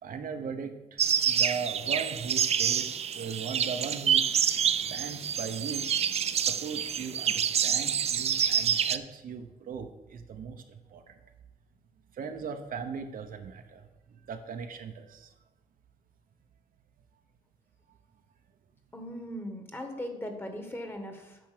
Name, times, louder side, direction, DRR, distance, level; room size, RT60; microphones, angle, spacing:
voice 1, 0.0-4.4 4.8-5.9 6.3-11.1 12.2-13.9 14.3-15.3, right 6 dB, 80° right, 7 dB, 0.9 m, -38 dB
sound 1, 1.0-9.0, right 8 dB, 45° right, 0.4 m, -27 dB
voice 2, 18.9-21.4, equal, 15° left, 5 dB, 1.3 m, -39 dB
9.1 x 6.0 x 6.7 m, 1.0 s
wide cardioid pair, 165°, 14 cm